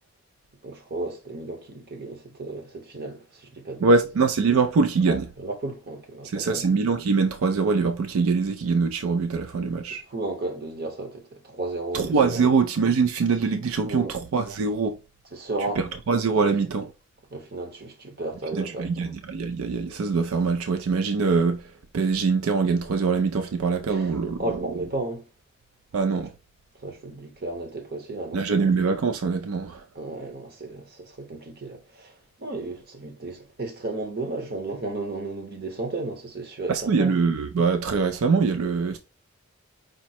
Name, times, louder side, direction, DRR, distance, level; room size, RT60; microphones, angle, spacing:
voice 1, 0.6-3.9 5.1-6.7 10.1-12.4 13.8-14.1 15.3-15.8 16.3-16.5 17.3-19.1 23.9-25.2 26.8-28.7 29.9-32.1 32.4-37.1, right 2 dB, 50° right, 1.0 m, -34 dB
voice 2, 3.8-5.3 6.2-10.0 11.9-15.0 15.8-16.9 18.5-24.4 25.9-26.3 28.3-29.8 36.7-39.0, right 4 dB, 85° right, 0.4 m, -23 dB
5.1 x 2.1 x 4.1 m
head